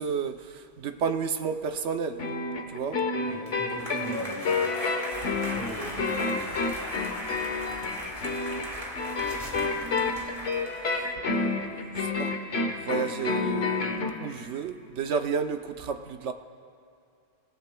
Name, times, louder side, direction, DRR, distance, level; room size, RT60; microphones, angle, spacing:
voice 1, 0.0-2.2 2.7-3.0 11.0-16.3, right 6 dB, 70° right, 7 dB, 1.1 m, -32 dB
sound 1, 2.2-14.1, left 4 dB, 70° left, 1.5 m, -29 dB
voice 2, 3.1-4.7 5.3-6.7, equal, 10° right, -8 dB, 3.1 m, -42 dB
sound 2, 3.2-11.0, equal, 25° right, 2.4 m, -38 dB
sound 3, 5.1-10.7, left 2 dB, 35° left, 1.4 m, -48 dB
26.0 x 17.5 x 2.3 m, 2.5 s
omnidirectional pair, 1.2 m